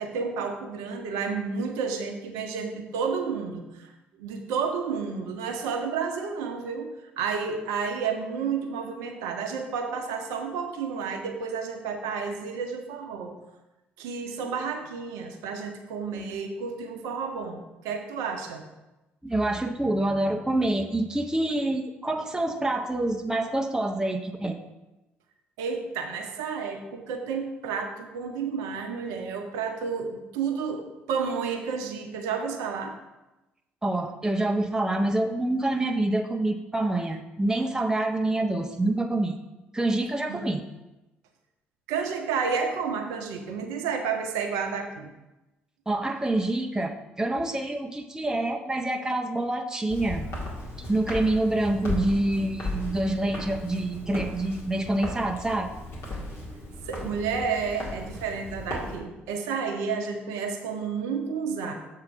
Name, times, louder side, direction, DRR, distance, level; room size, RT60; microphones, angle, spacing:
voice 1, 0.0-3.9 4.2-13.3 14.0-18.6 25.6-32.9 40.3-40.4 41.9-45.1 56.8-61.7, right 5 dB, 65° right, 4 dB, 0.7 m, -31 dB
voice 2, 19.2-24.7 33.8-39.4 39.7-40.6 45.9-50.3 50.8-55.7, right 1 dB, 10° right, 4 dB, 0.6 m, -26 dB
Walk footsteps, 49.9-58.9, left 1 dB, 45° left, 2.0 m, -36 dB
7.3 x 3.8 x 5.5 m, 1.0 s
figure-of-eight pair, 45°, 6 cm